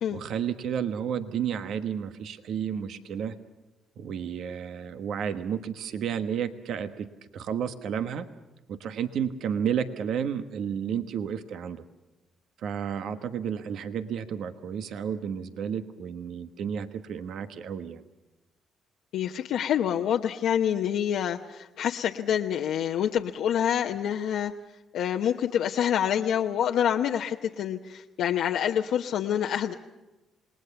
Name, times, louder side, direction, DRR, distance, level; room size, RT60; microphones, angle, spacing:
voice 1, 0.1-3.3 4.0-8.3 8.7-11.8 12.6-18.0, right 8 dB, 75° right, 10 dB, 1.3 m, -32 dB
voice 2, 19.1-24.5 24.9-29.7, left 9 dB, 80° left, 1 dB, 1.0 m, -27 dB
28.0 x 20.0 x 7.0 m, 1.1 s
cardioid pair, 90°, 0 cm